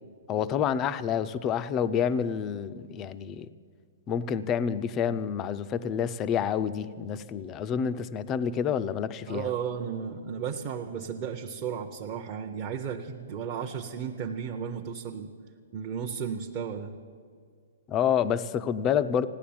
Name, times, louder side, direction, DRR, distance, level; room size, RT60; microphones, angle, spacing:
voice 1, 0.3-3.5 4.1-9.5 17.9-19.3, left 8 dB, 20° left, 13 dB, 0.4 m, -28 dB
voice 2, 9.3-15.3 15.7-16.9, right 7 dB, 25° right, 1 dB, 0.7 m, -34 dB
16.0 x 10.0 x 8.6 m, 2.1 s
hypercardioid pair, 170°, 0 cm